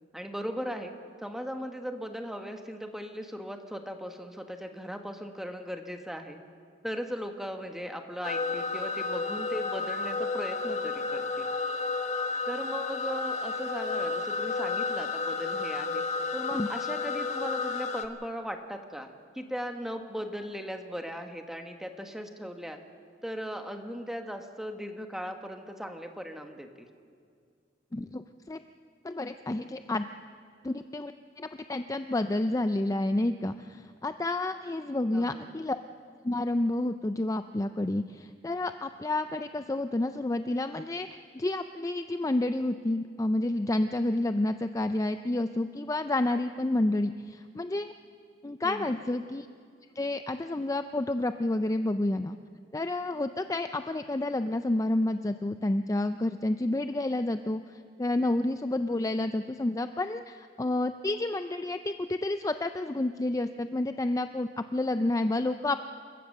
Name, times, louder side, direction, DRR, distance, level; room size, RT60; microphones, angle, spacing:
voice 1, 0.1-6.4 6.8-11.5 12.5-16.0 16.3-22.8 23.2-26.9 35.1-35.5 48.6-49.0, equal, ahead, 5 dB, 1.4 m, -38 dB
sound 1, 8.2-18.1, left 4 dB, 40° left, 1.3 m, -32 dB
voice 2, 27.9-28.6 29.0-30.1 30.6-35.8 36.2-47.9 48.4-49.5 50.0-52.4 52.7-65.8, left 2 dB, 20° left, 9 dB, 0.4 m, -30 dB
28.5 x 15.5 x 6.6 m, 2.2 s
head